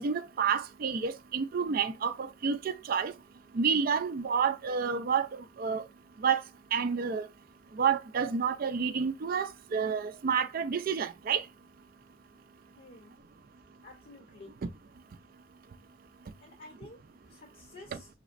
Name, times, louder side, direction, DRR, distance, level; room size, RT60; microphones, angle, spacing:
voice 1, 0.0-3.1 3.5-5.3 5.6-5.8 6.2-6.4 6.7-7.3 7.8-11.4, right 6 dB, 45° right, 0.4 m, -29 dB
voice 2, 12.8-13.1 13.8-14.5 16.4-18.1, left 2 dB, 45° left, 0.8 m, -51 dB
5.8 x 3.0 x 2.5 m
head